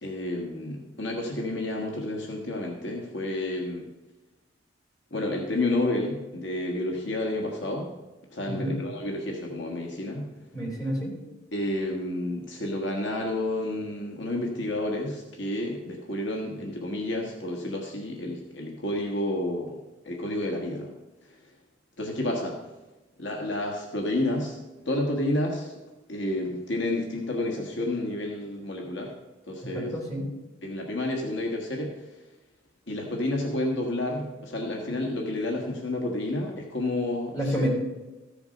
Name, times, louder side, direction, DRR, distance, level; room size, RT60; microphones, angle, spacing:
voice 1, 0.0-3.9 5.1-7.9 8.3-10.3 11.5-19.8 20.0-20.9 22.0-22.6 23.2-24.6 24.8-25.7 26.1-29.1 29.5-29.9 30.6-31.9 32.9-37.5, left 1 dB, 60° left, 1 dB, 1.5 m, -30 dB
voice 2, 10.5-11.1 29.7-30.2 37.3-37.7, equal, 15° left, -4 dB, 3.8 m, -29 dB
14.5 x 7.1 x 5.2 m, 1.1 s
head